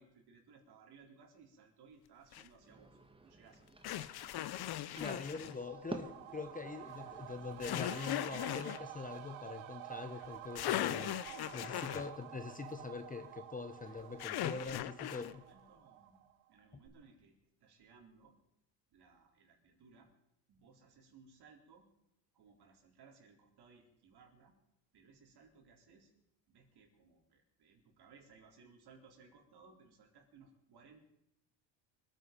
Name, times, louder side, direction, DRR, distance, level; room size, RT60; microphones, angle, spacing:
voice 1, 0.0-4.0 14.5-18.3 18.9-20.1 20.5-21.9 22.3-24.5 24.9-26.1 26.5-31.0, right 5 dB, 50° right, 4.1 m, -62 dB
sound 1, 2.3-2.5 3.8-5.5 7.6-8.8 10.2-10.3 10.6-12.1 14.2-15.3, left 13 dB, 50° left, 0.9 m, -38 dB
sound 2, 2.6-7.6, right 2 dB, 10° right, 1.5 m, -51 dB
voice 2, 5.0-15.4 16.7-16.8, left 4 dB, 15° left, 0.9 m, -44 dB
sound 3, 5.1-16.5 16.9-17.0, right 13 dB, 75° right, 1.2 m, -51 dB
25.0 x 9.3 x 5.3 m
supercardioid pair, 95°, 48 cm